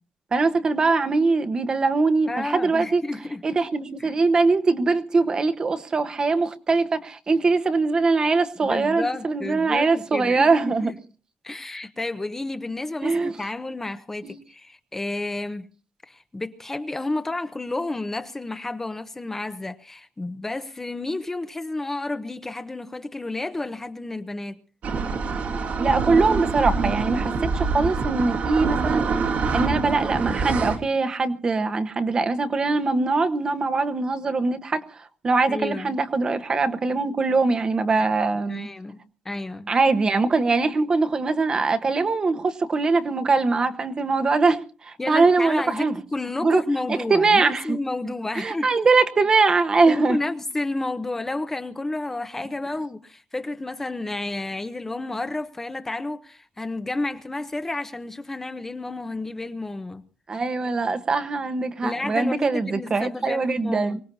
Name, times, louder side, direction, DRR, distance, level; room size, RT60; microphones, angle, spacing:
voice 1, 0.3-3.0 3.4-10.9 13.0-13.3 14.2-14.4 25.8-29.1 29.5-34.8 35.2-38.7 39.7-45.9 46.4-46.6 46.9-47.8 48.3-50.2 60.3-64.0, right 3 dB, 30° right, 1.1 m, -22 dB
voice 2, 2.3-3.4 4.0-4.1 8.6-10.9 11.4-15.7 16.0-24.6 35.5-36.0 38.5-39.7 45.0-48.9 49.8-60.0 61.8-64.0, left 2 dB, 15° left, 0.8 m, -31 dB
sound 1, 24.8-30.8, right 4 dB, 60° right, 2.1 m, -25 dB
24.0 x 18.5 x 2.7 m
wide cardioid pair, 170°, 3 cm